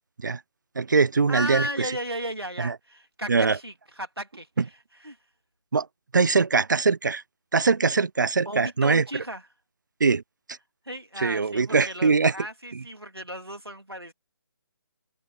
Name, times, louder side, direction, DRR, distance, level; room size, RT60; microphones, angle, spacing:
voice 1, 0.8-1.7 2.6-2.7 3.3-3.6 5.7-5.9 6.1-7.2 7.5-9.0 10.0-10.2 10.5-10.6 11.2-12.3, right 4 dB, 50° right, 0.7 m, -22 dB
voice 2, 1.3-5.2 8.4-9.4 10.8-14.1, equal, 90° right, 2.7 m, -35 dB
figure-of-eight pair, 150°, 12 cm